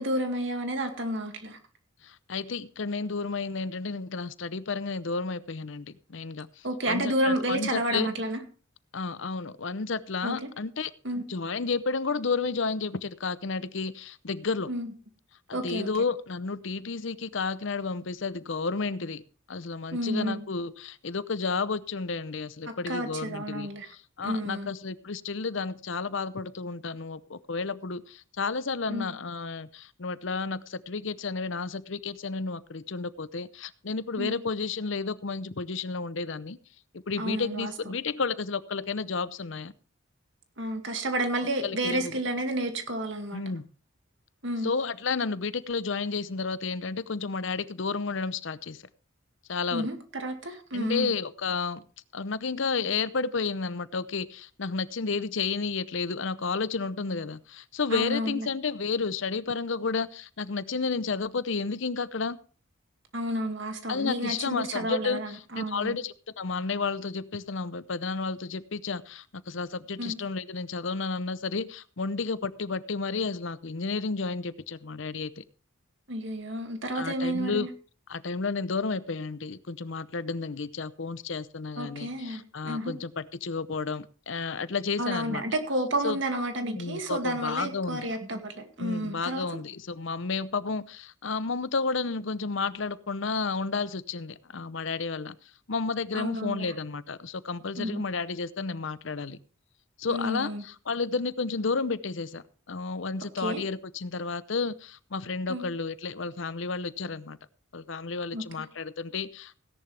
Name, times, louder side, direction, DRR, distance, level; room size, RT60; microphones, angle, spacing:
voice 1, 0.0-1.6 6.6-8.4 10.2-10.5 11.0-11.3 14.7-14.9 15.5-15.9 19.9-20.4 22.9-23.9 24.2-24.7 28.9-29.0 34.2-34.3 37.2-37.7 40.6-43.4 44.4-44.7 49.7-51.1 57.9-58.5 63.1-66.0 70.0-70.2 76.1-77.7 81.8-82.9 85.0-89.5 96.1-96.7 97.8-98.0 100.1-100.6 103.4-103.6 105.5-105.6 108.3-108.4, right 1 dB, 60° right, 5 dB, 2.3 m, -31 dB
voice 2, 2.0-8.1 8.9-10.9 11.3-14.7 15.5-19.2 19.5-36.6 36.9-39.7 41.6-42.2 43.3-43.6 44.6-48.8 49.5-49.9 50.7-51.8 52.1-62.4 63.9-75.4 76.9-77.7 78.1-85.4 86.0-86.2 86.7-88.1 88.8-95.4 95.7-99.4 100.0-107.4 107.7-109.6, left 4 dB, 65° left, 16 dB, 0.7 m, -32 dB
17.0 x 10.5 x 3.4 m, 0.37 s
head